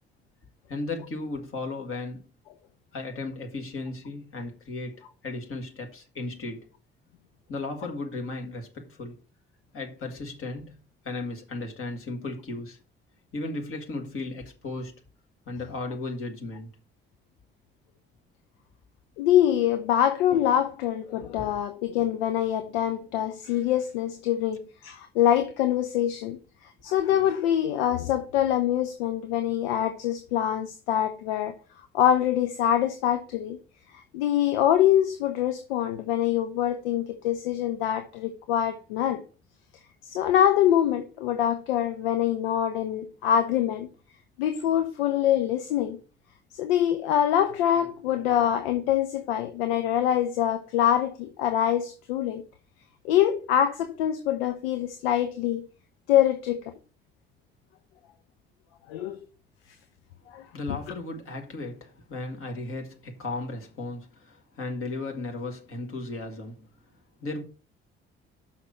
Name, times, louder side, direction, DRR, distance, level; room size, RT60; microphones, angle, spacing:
voice 1, 0.7-2.3 2.9-6.7 7.5-9.2 9.7-12.8 13.3-15.0 15.5-16.7 60.5-66.7 67.2-67.4, left 2 dB, 45° left, 2.0 m, -35 dB
voice 2, 19.2-26.4 26.8-31.6 31.9-33.6 34.1-39.2 40.1-43.9 44.4-46.0 46.5-52.4 53.0-55.6 56.1-56.7 58.9-59.2 60.3-60.4, left 10 dB, 70° left, 0.8 m, -24 dB
5.9 x 5.8 x 6.6 m
figure-of-eight pair, 45°, 30 cm